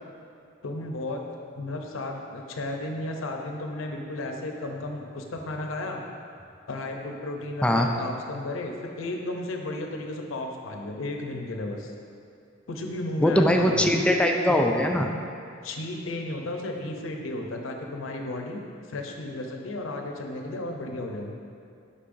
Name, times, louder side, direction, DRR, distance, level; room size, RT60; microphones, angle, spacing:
voice 1, 0.6-1.2 1.5-6.0 6.7-11.9 12.7-13.9 15.6-21.4, left 2 dB, 90° left, 2 dB, 0.6 m, -34 dB
voice 2, 13.2-15.1, equal, 5° left, 2 dB, 0.3 m, -21 dB
8.3 x 5.4 x 2.6 m, 2.5 s
head